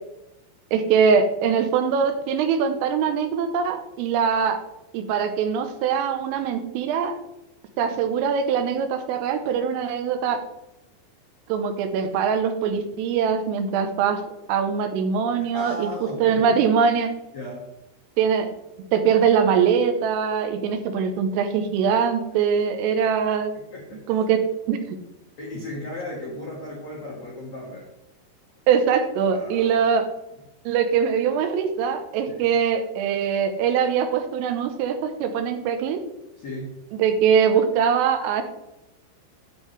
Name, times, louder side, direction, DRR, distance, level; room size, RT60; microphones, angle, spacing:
voice 1, 0.7-4.6 4.9-7.2 7.8-10.4 11.5-14.2 14.5-15.9 16.2-17.1 18.2-18.5 18.9-23.5 24.1-24.4 24.7-24.8 28.7-30.1 30.7-36.0 36.9-38.4, right 7 dB, 90° right, 7 dB, 3.4 m, -22 dB
voice 2, 15.5-16.5 17.3-17.7 23.5-24.0 25.4-27.9 29.3-29.7 32.3-32.5 36.4-36.8, left 1 dB, 90° left, -4 dB, 1.5 m, -36 dB
9.7 x 7.3 x 3.4 m, 0.89 s
omnidirectional pair, 5.8 m